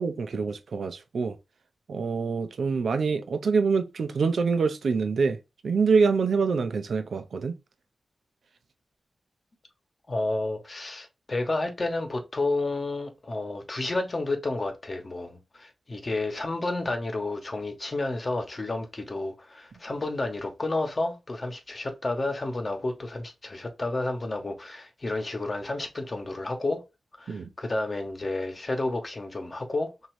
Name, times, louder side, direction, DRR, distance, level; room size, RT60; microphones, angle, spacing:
voice 1, 0.0-1.4 1.9-7.6 27.3-27.5, right 5 dB, 80° right, 0.6 m, -25 dB
voice 2, 10.1-26.8 27.1-30.1, left 2 dB, 40° left, 1.1 m, -31 dB
3.1 x 2.7 x 4.5 m
cardioid pair, 65°, 0 cm